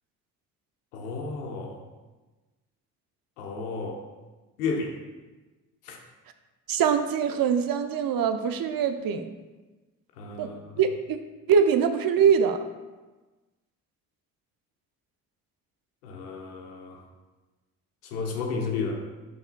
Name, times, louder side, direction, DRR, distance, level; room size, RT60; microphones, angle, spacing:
voice 1, 0.9-1.8 3.4-4.0 4.6-5.0 5.8-6.0 10.2-10.8 16.0-17.0 18.0-19.0, left 4 dB, 85° left, 2 dB, 1.0 m, -32 dB
voice 2, 6.7-9.3 10.4-10.5 10.8-11.2 11.5-12.6, right 7 dB, 50° right, 8 dB, 0.7 m, -23 dB
9.5 x 5.6 x 2.3 m, 1.2 s
hypercardioid pair, 50°, 44 cm